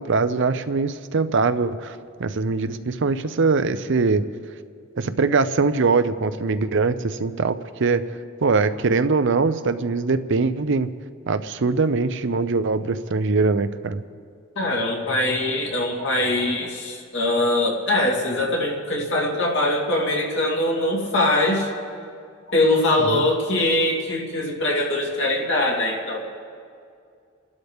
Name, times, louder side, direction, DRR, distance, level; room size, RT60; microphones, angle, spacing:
voice 1, 0.0-4.2 5.0-8.0 8.4-10.9 11.3-14.0 23.0-23.3, right 4 dB, 65° right, 11 dB, 0.6 m, -22 dB
voice 2, 14.6-21.7 22.5-26.2, left 1 dB, 60° left, -2 dB, 2.6 m, -22 dB
29.0 x 12.0 x 3.6 m, 2.3 s
head